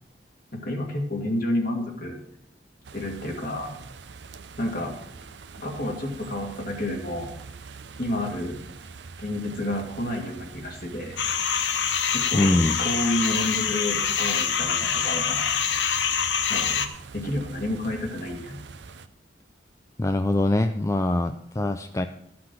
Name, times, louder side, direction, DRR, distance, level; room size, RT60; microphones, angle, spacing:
voice 1, 0.5-2.2 2.9-3.7 4.6-4.9 5.6-7.3 8.0-8.6 9.2-11.2 12.1-15.5 16.5-16.9 17.1-18.6, left 1 dB, 55° left, 1 dB, 2.3 m, -30 dB
sound 1, 2.8-19.1, right 4 dB, 80° right, 0.6 m, -44 dB
sound 2, 11.2-16.9, left 7 dB, 85° left, 0.8 m, -25 dB
voice 2, 12.3-12.8 20.0-22.1, left 1 dB, 15° left, 8 dB, 0.4 m, -23 dB
13.5 x 5.9 x 6.2 m, 0.72 s
head